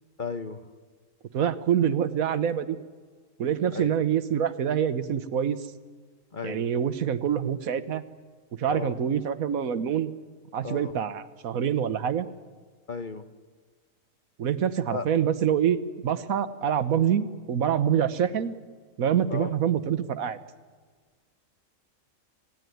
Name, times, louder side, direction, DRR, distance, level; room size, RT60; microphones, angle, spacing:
voice 1, 0.2-0.6 3.7-4.0 6.3-6.7 8.7-9.0 10.6-10.9 12.9-13.3 14.9-15.1 19.3-19.5, left 4 dB, 40° left, 10 dB, 1.1 m, -34 dB
voice 2, 1.3-2.8 3.4-5.6 6.4-8.0 8.6-10.1 10.5-12.3 14.4-18.5 19.0-20.4, right 8 dB, 85° right, 13 dB, 1.5 m, -26 dB
27.5 x 17.5 x 9.4 m, 1.5 s
omnidirectional pair, 1.4 m